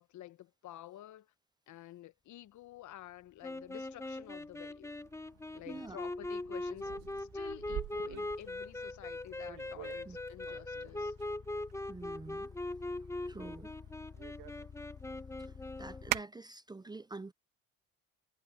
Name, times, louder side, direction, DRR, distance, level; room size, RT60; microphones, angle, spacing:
voice 1, 0.0-1.3 1.7-4.9 5.5-11.1, left 13 dB, 60° left, 1.1 m, -51 dB
sound 1, 2.9-16.2, left 6 dB, 40° left, 3.6 m, -54 dB
sound 2, 3.4-16.1, left 2 dB, 10° left, 1.1 m, -41 dB
sound 3, 5.0-16.2, right 14 dB, 70° right, 1.9 m, -46 dB
voice 2, 5.7-6.0 10.1-10.2 11.9-12.5 12.8-12.9 13.3-13.7 15.4-17.3, right 3 dB, 15° right, 0.6 m, -47 dB
supercardioid pair, 75°, 33 cm